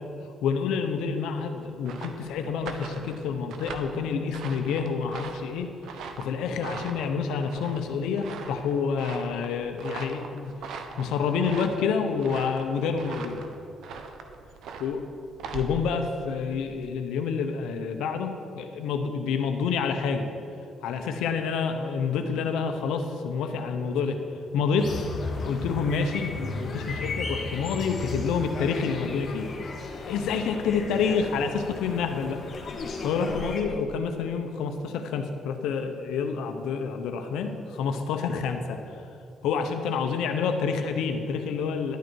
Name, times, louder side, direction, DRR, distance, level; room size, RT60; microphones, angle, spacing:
voice 1, 0.4-5.7 6.2-10.5 11.0-13.4 14.8-15.0 15.5-20.3 20.8-24.2 24.5-25.0 25.4-29.5 29.9-32.4 33.0-38.8 39.4-42.0, left 5 dB, 90° left, 6 dB, 0.8 m, -28 dB
sound 1, 1.6-16.9, right 5 dB, 80° right, 0.8 m, -41 dB
sound 2, 24.8-33.6, left 3 dB, 45° left, 1.3 m, -35 dB
11.5 x 9.3 x 4.6 m, 2.7 s
cardioid pair, 90°, 0 cm